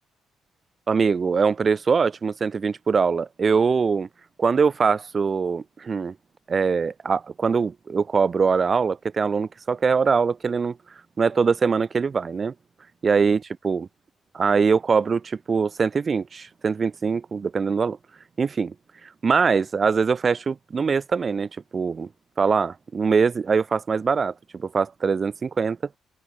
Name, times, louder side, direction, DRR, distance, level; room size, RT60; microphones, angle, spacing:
voice 1, 0.9-4.1 4.4-6.2 6.5-10.8 11.2-12.5 13.0-13.9 14.3-18.0 18.4-18.7 19.0-22.1 22.4-25.8, right 5 dB, 40° right, 7.5 m, -22 dB
open air
cardioid pair, 90°, 0 cm